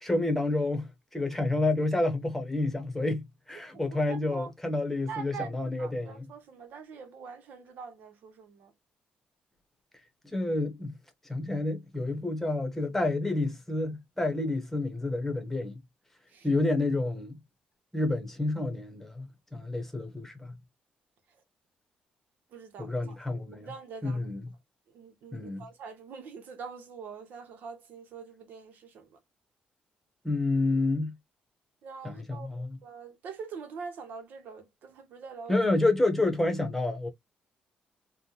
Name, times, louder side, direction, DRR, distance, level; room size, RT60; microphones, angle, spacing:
voice 1, 0.0-6.3 10.2-10.9 11.3-15.8 16.4-17.4 17.9-20.5 22.8-23.7 24.0-24.5 25.3-25.7 30.2-31.1 32.0-32.8 35.5-37.1, left 2 dB, 10° left, 1.1 m, -29 dB
voice 2, 3.7-4.5 5.1-8.7 16.3-16.5 22.5-24.2 24.9-29.2 31.8-35.6, right 6 dB, 75° right, 0.9 m, -44 dB
3.5 x 2.3 x 2.8 m
cardioid pair, 85°, 3 cm